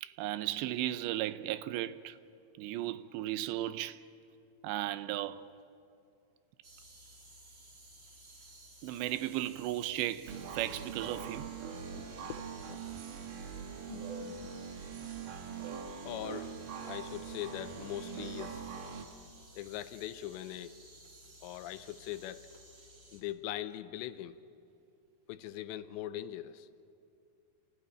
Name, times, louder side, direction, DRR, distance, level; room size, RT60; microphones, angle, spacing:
voice 1, 0.0-2.2 2.6-4.0 4.6-5.5 8.8-11.5, right 14 dB, 85° right, 2.8 m, -35 dB
sound 1, 6.6-23.2, right 1 dB, 30° right, 2.7 m, -56 dB
sound 2, 10.3-19.1, right 6 dB, 60° right, 2.4 m, -42 dB
voice 2, 11.9-12.8 13.8-14.6 16.1-16.6 16.8-18.6 19.5-20.7 21.4-22.5 23.1-24.4 25.3-26.7, left 13 dB, 85° left, 3.0 m, -41 dB
28.5 x 14.5 x 10.0 m
omnidirectional pair, 5.1 m